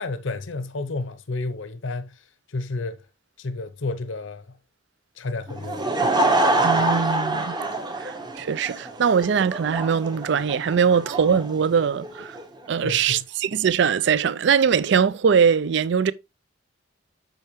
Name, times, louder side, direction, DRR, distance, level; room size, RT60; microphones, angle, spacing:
voice 1, 0.0-3.0 3.4-4.6 5.2-6.2 12.8-13.2, left 3 dB, 80° left, 0.7 m, -31 dB
Laughter / Crowd, 5.5-12.4, right 2 dB, 20° right, 1.0 m, -25 dB
voice 2, 6.6-7.6 8.0-12.4 12.7-16.1, right 6 dB, 60° right, 0.4 m, -21 dB
8.7 x 5.7 x 3.0 m
head